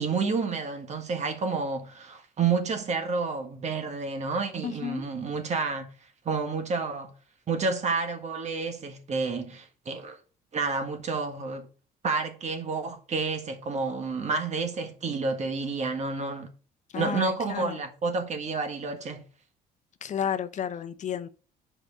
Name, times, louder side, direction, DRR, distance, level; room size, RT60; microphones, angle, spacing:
voice 1, 0.0-5.9 6.3-7.1 7.5-10.2 10.5-11.7 12.0-16.5 16.9-19.2, right 4 dB, 40° right, 1.8 m, -30 dB
voice 2, 4.6-5.0 16.9-17.8 20.0-21.3, left 8 dB, 45° left, 0.7 m, -32 dB
7.8 x 4.9 x 4.7 m
cardioid pair, 110°, 17 cm